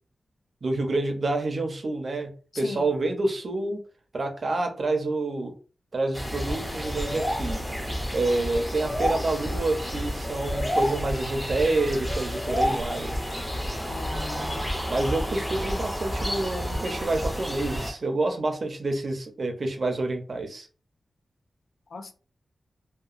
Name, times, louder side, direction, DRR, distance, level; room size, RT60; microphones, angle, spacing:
voice 1, 0.6-3.8 4.1-5.5 5.9-7.6 8.1-13.1 14.4-14.5 14.9-20.7, right 2 dB, 50° right, 0.6 m, -28 dB
sound 1, 6.1-17.9, equal, 10° left, 0.6 m, -30 dB
voice 2, 13.9-14.7 21.9-22.1, left 3 dB, 65° left, 0.4 m, -38 dB
2.8 x 2.2 x 2.4 m
wide cardioid pair, 105°, 0 cm